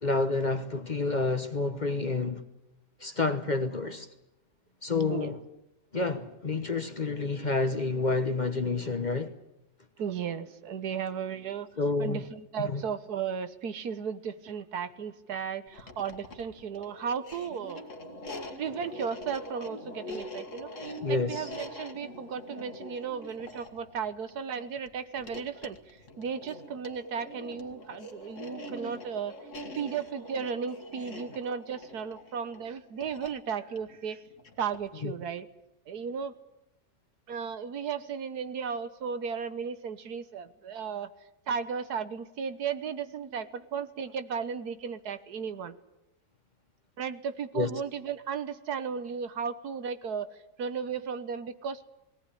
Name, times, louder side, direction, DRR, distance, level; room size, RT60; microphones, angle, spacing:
voice 1, 0.0-2.4 3.0-4.1 4.8-5.4 5.9-9.3 11.8-12.3 12.6-12.8 21.0-21.5 35.0-35.1 47.5-47.7, left 3 dB, 35° left, 1.0 m, -29 dB
voice 2, 10.0-11.7 12.0-17.9 18.6-29.4 29.8-34.2 34.6-35.5 35.9-36.3 37.3-41.1 41.5-45.7 47.0-51.8, right 6 dB, 80° right, 1.6 m, -35 dB
sound 1, 15.7-35.0, left 1 dB, 50° left, 2.1 m, -44 dB
19.5 x 18.0 x 10.0 m
omnidirectional pair, 1.7 m